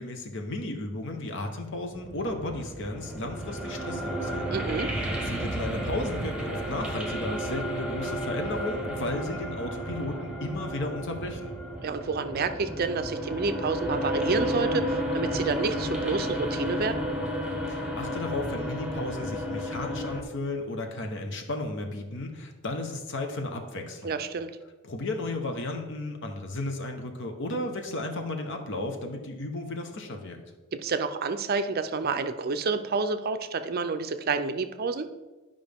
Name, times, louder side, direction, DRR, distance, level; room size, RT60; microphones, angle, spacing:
voice 1, 0.0-4.5 4.9-11.5 17.7-24.2 24.8-30.4, left 2 dB, 60° left, 4 dB, 1.1 m, -34 dB
sound 1, 1.7-20.2, equal, 5° right, 1.0 m, -32 dB
voice 2, 4.5-4.9 11.8-17.0 24.0-24.5 30.7-35.1, right 4 dB, 45° right, 9 dB, 0.5 m, -29 dB
11.5 x 5.3 x 3.5 m, 1.2 s
head